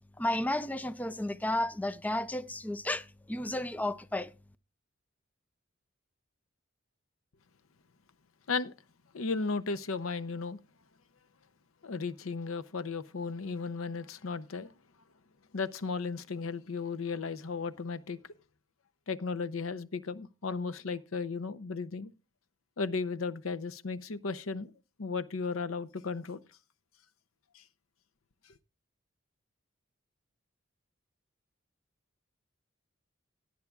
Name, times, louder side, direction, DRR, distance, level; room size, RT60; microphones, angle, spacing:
voice 1, 0.2-4.3, left 1 dB, 10° left, 0.4 m, -32 dB
voice 2, 9.1-10.6 11.8-14.7 15.5-18.2 19.1-22.1 22.8-24.7 25.0-26.4 27.5-27.6, left 4 dB, 90° left, 0.7 m, -35 dB
17.5 x 9.4 x 2.4 m
head